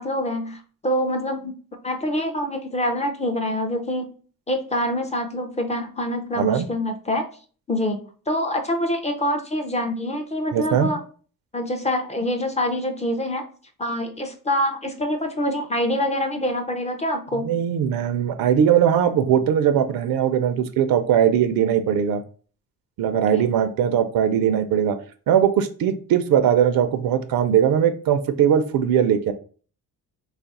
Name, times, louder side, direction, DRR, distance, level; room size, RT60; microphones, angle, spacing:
voice 1, 0.0-1.5 1.8-4.1 4.5-7.2 7.7-11.0 11.5-13.4 13.8-17.6 23.3-23.4, left 1 dB, 20° left, 4 dB, 0.4 m, -25 dB
voice 2, 6.4-6.7 10.5-10.9 17.4-22.2 23.0-25.0 25.3-29.3, right 9 dB, 70° right, 10 dB, 0.5 m, -20 dB
3.1 x 2.4 x 4.0 m, 0.41 s
cardioid pair, 130°, 36 cm